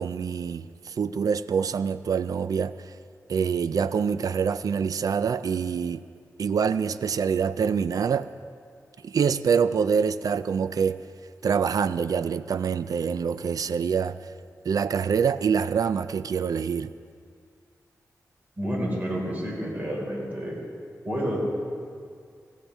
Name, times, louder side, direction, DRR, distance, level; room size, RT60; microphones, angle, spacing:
voice 1, 0.0-2.9 3.3-6.0 6.4-8.3 9.0-11.0 11.4-14.2 14.6-16.9, right 6 dB, 75° right, 0.4 m, -25 dB
voice 2, 18.6-20.6 21.0-21.4, equal, 30° right, 4.5 m, -29 dB
18.0 x 15.5 x 3.5 m
wide cardioid pair, 95°, 6 cm